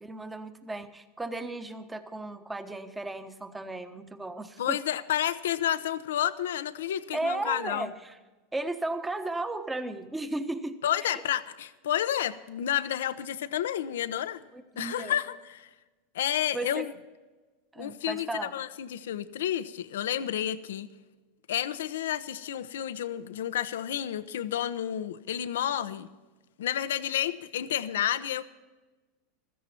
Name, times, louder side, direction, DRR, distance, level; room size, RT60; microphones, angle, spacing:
voice 1, 0.0-4.8 7.1-8.1 8.5-11.1 14.5-15.1 16.5-16.9 17.7-18.5, right 2 dB, 10° right, 9 dB, 1.2 m, -35 dB
voice 2, 4.6-7.9 10.8-14.4 14.8-15.7 16.1-16.9 17.8-20.9 21.5-26.1 26.6-28.4, left 11 dB, 85° left, 13 dB, 0.8 m, -30 dB
16.0 x 13.5 x 4.4 m, 1.2 s
supercardioid pair, 115°, 0 cm